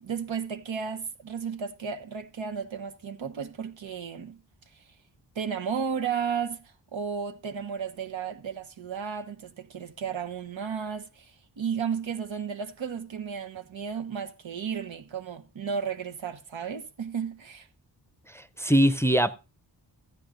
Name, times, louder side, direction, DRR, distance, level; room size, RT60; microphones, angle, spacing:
voice 1, 0.0-4.4 5.3-6.6 6.9-17.7, right 6 dB, 85° right, 1.1 m, -33 dB
voice 2, 18.3-19.3, equal, 5° left, 0.6 m, -22 dB
16.0 x 9.5 x 2.6 m
cardioid pair, 45°, 45 cm